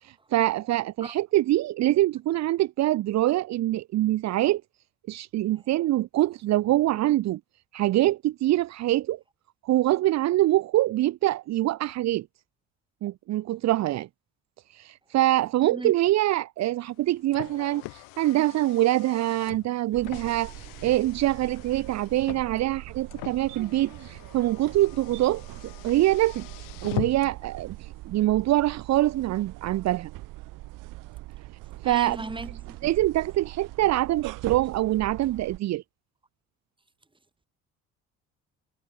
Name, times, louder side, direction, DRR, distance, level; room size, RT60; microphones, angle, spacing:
voice 1, 0.0-4.6 5.1-7.4 7.7-9.2 9.6-12.3 13.0-14.1 14.7-26.5 26.8-30.1 31.8-32.2 32.8-35.8, right 15 dB, 60° right, 0.7 m, -24 dB
Car, 16.9-27.5, left 30 dB, 90° left, 5.4 m, -42 dB
sound 1, 19.9-35.6, right 19 dB, 80° right, 4.0 m, -41 dB
voice 2, 31.8-32.8, right 2 dB, 15° right, 2.9 m, -36 dB
supercardioid pair, 75°, 31 cm